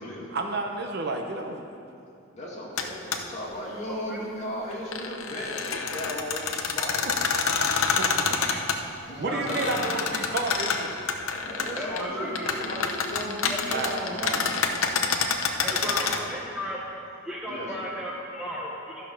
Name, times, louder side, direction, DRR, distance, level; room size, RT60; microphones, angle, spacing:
voice 1, 0.3-1.7 7.8-8.4 9.2-11.0 13.7-15.4, right 2 dB, 55° right, 4 dB, 0.8 m, -32 dB
voice 2, 2.3-7.1 9.1-9.8 11.4-14.5 15.7-16.4 17.5-17.7, equal, 35° left, -5 dB, 2.1 m, -36 dB
sound 1, 2.8-2.9 3.1-3.2 4.7-8.8 9.5-12.0 12.3-16.2, left 5 dB, 90° left, 0.8 m, -27 dB
voice 3, 9.3-9.9 11.7-12.5 13.5-13.6 15.6-16.9 17.2-19.0, equal, 5° right, -5 dB, 0.9 m, -35 dB
13.0 x 5.3 x 6.0 m, 2.5 s
head